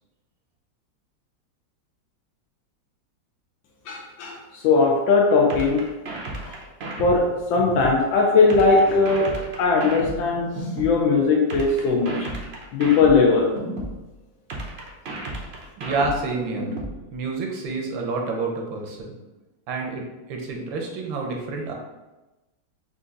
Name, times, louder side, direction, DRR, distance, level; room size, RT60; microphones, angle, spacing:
voice 1, 3.9-5.9 6.4-6.6 7.0-12.3 12.7-13.5, left 4 dB, 90° left, -1 dB, 1.4 m, -19 dB
sound 1, 5.5-8.0 8.5-11.0 11.5-14.0 14.5-17.0, right 1 dB, 70° right, 0.6 m, -33 dB
voice 2, 15.8-16.7 17.1-19.2 19.7-21.7, right 3 dB, 85° right, 1 dB, 1.6 m, -28 dB
4.5 x 2.6 x 3.8 m, 1.1 s
omnidirectional pair, 2.1 m